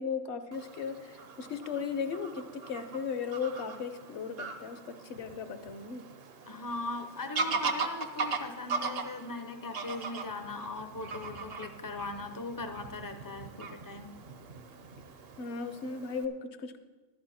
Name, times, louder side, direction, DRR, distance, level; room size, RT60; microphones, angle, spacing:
voice 1, 0.0-6.0 15.4-16.8, left 6 dB, 60° left, 10 dB, 1.0 m, -36 dB
Fowl / Bird vocalization bird call bird song, 0.5-16.2, right 4 dB, 55° right, 0.9 m, -40 dB
voice 2, 6.5-14.1, left 3 dB, 25° left, 7 dB, 0.5 m, -39 dB
12.0 x 11.0 x 4.2 m, 1.3 s
omnidirectional pair, 1.3 m